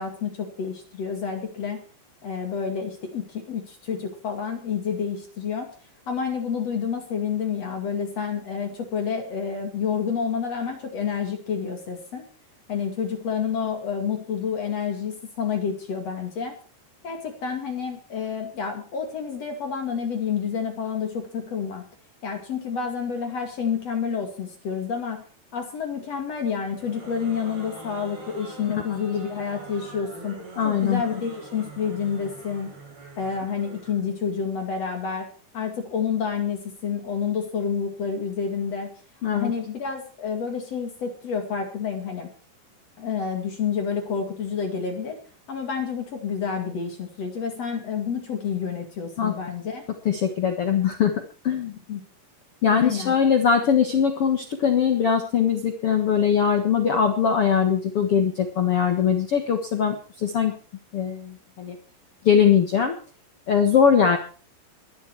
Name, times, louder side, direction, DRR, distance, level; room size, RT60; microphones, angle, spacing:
voice 1, 0.0-1.8 2.2-5.7 6.1-12.2 12.7-16.6 17.0-21.8 22.2-25.2 25.5-32.7 33.2-35.3 35.5-38.9 39.3-42.3 43.0-45.2 45.5-49.9 51.9-52.0 52.7-53.2, left 6 dB, 45° left, 4 dB, 2.9 m, -29 dB
sound 1, 26.7-34.0, right 2 dB, 60° right, 9.3 m, -43 dB
voice 2, 30.6-31.0 39.2-39.5 49.2-49.3 50.0-51.1 51.4-51.8 52.6-60.5 60.9-61.7 62.2-62.9 63.5-64.2, left 7 dB, 80° left, 5 dB, 1.2 m, -21 dB
20.5 x 11.0 x 4.6 m, 0.38 s
omnidirectional pair, 5.1 m